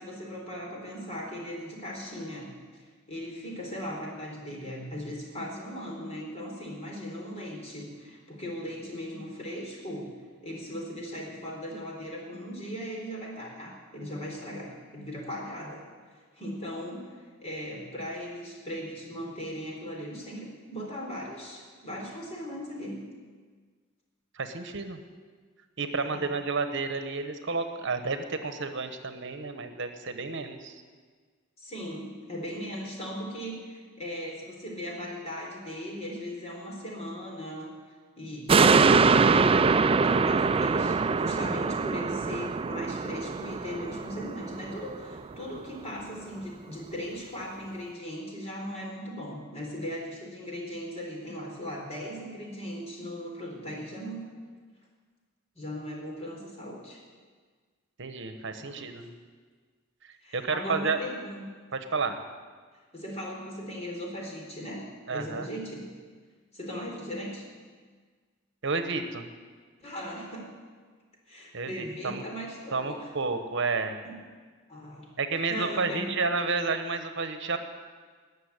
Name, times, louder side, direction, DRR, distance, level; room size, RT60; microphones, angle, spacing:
voice 1, 0.0-10.1 10.4-15.8 16.4-23.0 26.1-26.3 31.6-37.7 38.2-39.1 39.9-54.2 55.5-57.0 58.6-58.9 60.2-61.5 62.9-64.8 65.1-65.9 66.5-67.5 69.8-70.5 71.3-73.1 74.0-74.2 74.7-75.1 75.5-76.1, equal, 35° left, -1 dB, 4.2 m, -38 dB
voice 2, 24.4-25.0 25.8-30.8 58.0-59.1 60.3-61.0 61.7-62.2 65.1-65.5 68.6-69.3 71.5-72.2 72.7-74.0 75.2-77.6, right 4 dB, 65° right, 8 dB, 1.1 m, -31 dB
sound 1, 38.5-45.1 45.6-45.7, right 4 dB, 30° right, 0.4 m, -23 dB
20.0 x 6.9 x 9.8 m, 1.5 s
head